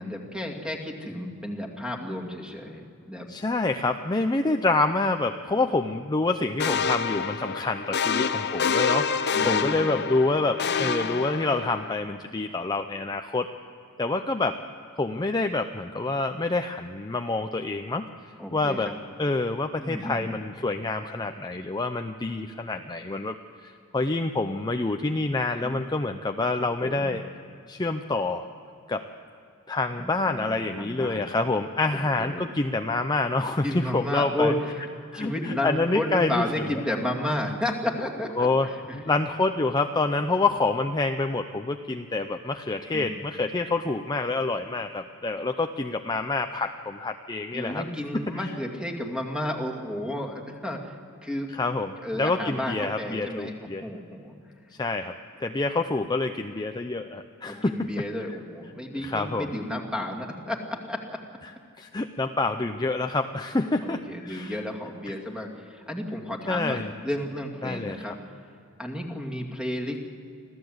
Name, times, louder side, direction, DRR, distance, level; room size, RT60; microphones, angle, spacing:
voice 1, 0.0-3.3 9.3-10.1 18.4-18.9 19.8-20.4 25.6-25.8 26.6-27.1 29.9-31.2 31.9-32.5 33.6-34.8 35.1-39.1 42.9-43.2 47.5-50.9 51.2-51.5 52.0-53.5 53.8-54.3 57.5-61.2 63.8-68.2 68.8-70.0, left 1 dB, 5° right, 2 dB, 2.4 m, -32 dB
voice 2, 3.3-13.5 14.0-14.6 15.0-18.0 18.5-18.9 19.2-23.3 23.6-27.2 27.7-28.5 28.9-29.0 29.7-34.5 35.1-36.4 38.4-38.7 38.9-47.8 48.3-48.5 51.5-53.8 54.8-55.1 55.4-57.9 59.0-59.5 61.8-64.6 66.5-66.9 67.6-68.2, left 3 dB, 20° left, 6 dB, 0.6 m, -27 dB
sound 1, 6.6-11.9, left 6 dB, 50° left, 0.8 m, -27 dB
25.5 x 15.5 x 8.0 m, 2.5 s
head